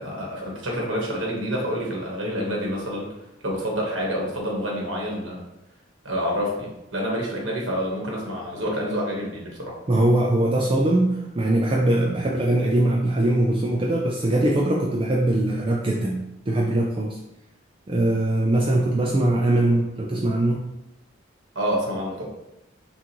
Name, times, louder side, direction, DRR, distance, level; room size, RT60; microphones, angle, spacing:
voice 1, 0.0-3.1 3.4-5.4 6.0-9.8 21.5-22.3, equal, 70° right, -2 dB, 1.3 m, -28 dB
voice 2, 9.9-17.2 17.9-20.8, right 1 dB, 25° right, -1 dB, 0.3 m, -22 dB
5.8 x 2.5 x 3.0 m, 0.90 s
head